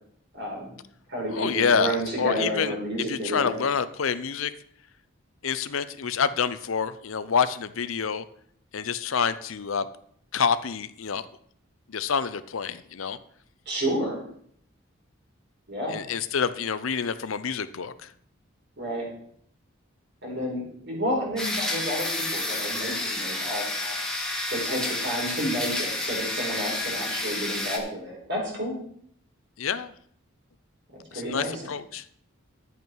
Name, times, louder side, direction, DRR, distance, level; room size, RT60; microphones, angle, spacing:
voice 1, 0.3-0.7 1.1-3.5 13.6-14.2 15.7-16.0 18.8-19.1 20.2-24.0 24.5-28.8 30.9-31.6, equal, 60° right, -2 dB, 4.6 m, -30 dB
voice 2, 1.3-2.7 3.1-4.5 5.4-8.2 8.7-9.9 10.3-11.3 11.9-13.2 15.9-18.1 29.6-29.9 31.1-32.0, left 6 dB, 85° left, 14 dB, 0.6 m, -27 dB
sound 1, 21.4-27.8, left 2 dB, 5° left, 1.6 m, -30 dB
11.0 x 8.2 x 4.6 m, 0.65 s
head